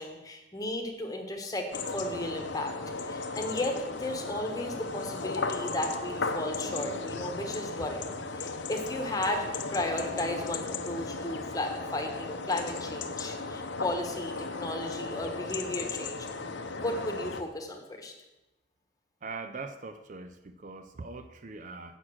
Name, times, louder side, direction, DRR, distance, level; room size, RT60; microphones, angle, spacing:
voice 1, 0.0-2.7 3.0-16.3 16.8-18.1, left 1 dB, 20° left, 3 dB, 1.1 m, -34 dB
sound 1, 1.7-17.4, left 3 dB, 70° left, 0.8 m, -36 dB
voice 2, 19.2-22.0, right 3 dB, 40° right, 9 dB, 0.5 m, -41 dB
8.0 x 7.2 x 6.2 m, 1.0 s
head